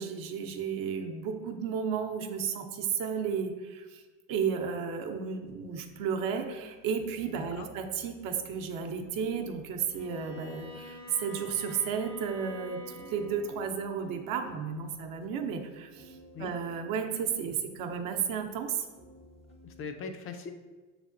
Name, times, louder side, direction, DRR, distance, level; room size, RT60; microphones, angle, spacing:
voice 1, 0.0-4.0 4.3-18.9, right 6 dB, 55° right, 4 dB, 0.7 m, -33 dB
sound 1, 4.3-19.8, right 2 dB, 15° right, 0.4 m, -55 dB
voice 2, 7.4-7.7 16.3-16.5 19.6-20.5, left 5 dB, 35° left, 6 dB, 0.5 m, -40 dB
Bowed string instrument, 9.9-13.6, left 2 dB, 80° left, 1.0 m, -47 dB
6.3 x 3.3 x 2.5 m, 1.3 s
hypercardioid pair, 90°, 41 cm